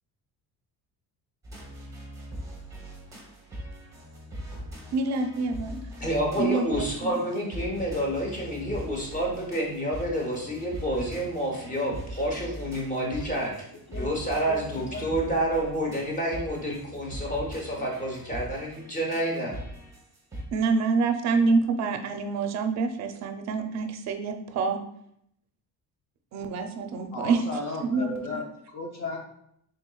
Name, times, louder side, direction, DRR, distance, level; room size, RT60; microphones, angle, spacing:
sound 1, 1.4-20.4, equal, 10° right, 0.8 m, -41 dB
voice 1, 4.9-5.8 6.4-7.1 20.5-24.8 26.3-27.4 27.8-28.1, right 4 dB, 50° right, 7 dB, 0.5 m, -26 dB
voice 2, 6.0-13.5 13.9-19.5, equal, 20° left, -1 dB, 0.9 m, -29 dB
voice 3, 14.5-15.3 17.8-17.9 27.1-28.4 28.7-29.2, left 2 dB, 45° left, 0 dB, 0.6 m, -35 dB
4.4 x 3.8 x 2.3 m, 0.73 s
cardioid pair, 165°, 37 cm